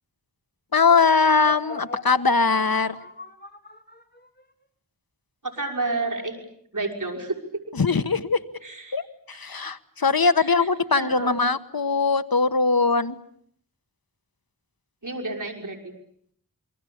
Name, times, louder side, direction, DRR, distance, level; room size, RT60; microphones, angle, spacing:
voice 1, 0.7-3.0 7.7-8.4 8.9-9.0 9.3-13.2, left 4 dB, 85° left, 13 dB, 1.3 m, -21 dB
sound 1, 0.9-4.4, left 2 dB, 30° left, 3.3 m, -39 dB
voice 2, 5.4-6.4 6.7-7.4 8.6-9.0 10.4-10.7 11.0-11.4 15.0-15.9, right 2 dB, 60° right, 1 dB, 6.1 m, -30 dB
28.0 x 23.5 x 8.7 m, 0.66 s
wide cardioid pair, 50°, 35 cm